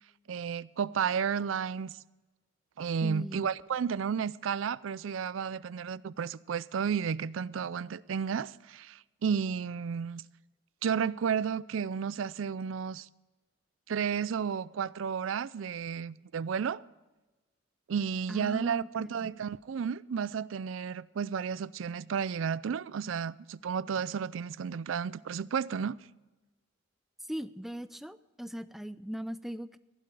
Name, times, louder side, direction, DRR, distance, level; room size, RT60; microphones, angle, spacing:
voice 1, 0.3-2.0 2.8-10.2 10.8-13.1 13.9-16.8 17.9-26.0, right 7 dB, 85° right, 0.4 m, -32 dB
voice 2, 3.0-3.5 18.3-19.3 27.3-29.8, equal, ahead, 0.4 m, -39 dB
16.0 x 11.5 x 4.8 m
head